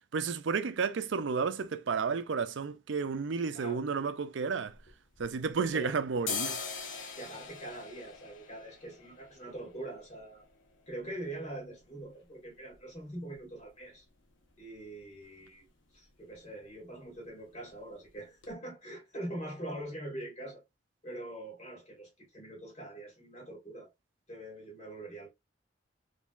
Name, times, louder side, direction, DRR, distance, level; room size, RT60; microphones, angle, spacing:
voice 1, 0.1-4.8 5.2-6.6, right 5 dB, 80° right, 0.5 m, -32 dB
sound 1, 4.7-5.7 6.1-13.8 14.1-14.2 14.5-15.0 15.3-15.6 15.8-16.1 16.3-17.1 17.4-17.6 18.0-18.1 18.4-18.5, left 5 dB, 80° left, 0.9 m, -43 dB
voice 2, 7.2-10.5 10.9-14.0 14.6-15.7 15.9-20.6 21.0-23.9 24.3-25.3, right 1 dB, 35° left, 1.9 m, -43 dB
3.7 x 3.3 x 2.4 m
head